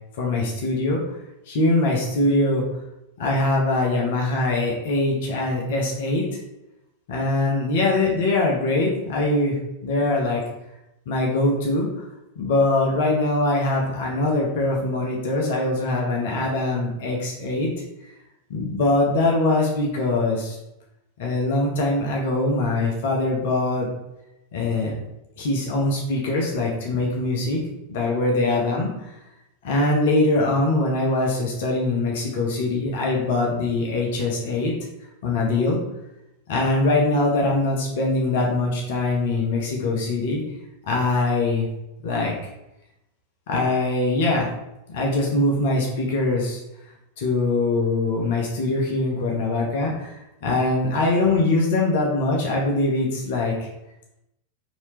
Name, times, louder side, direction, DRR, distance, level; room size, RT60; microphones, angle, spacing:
voice 1, 0.2-1.0 1.5-2.6 3.2-6.3 7.1-10.4 11.1-12.0 12.4-17.7 18.5-20.6 21.2-23.9 24.5-24.9 25.4-27.6 27.9-29.1 29.6-34.7 35.2-35.8 36.5-40.4 40.9-41.7 42.0-42.3 43.5-44.5 44.9-46.6 47.2-50.1 50.4-53.7, left 2 dB, 55° left, -1 dB, 0.7 m, -22 dB
3.0 x 2.8 x 3.2 m, 0.89 s
figure-of-eight pair, 90°, 0 cm